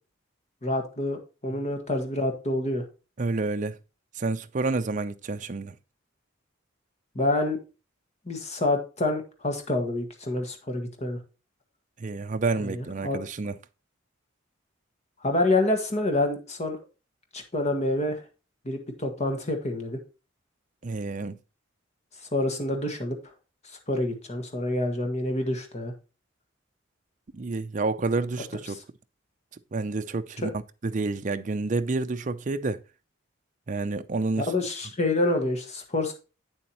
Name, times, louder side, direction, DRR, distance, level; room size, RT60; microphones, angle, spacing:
voice 1, 0.6-2.8 7.1-7.6 8.3-11.2 12.6-13.2 15.2-16.8 17.3-18.2 18.6-20.0 22.3-23.2 23.9-25.9 28.7-28.8 34.5-36.1, left 2 dB, 35° left, 1.5 m, -27 dB
voice 2, 3.2-3.8 4.2-5.7 12.0-13.6 20.8-21.4 27.3-28.8 29.7-30.5 30.8-32.8 33.7-34.5, right 3 dB, 40° right, 0.5 m, -29 dB
8.7 x 7.2 x 2.9 m
head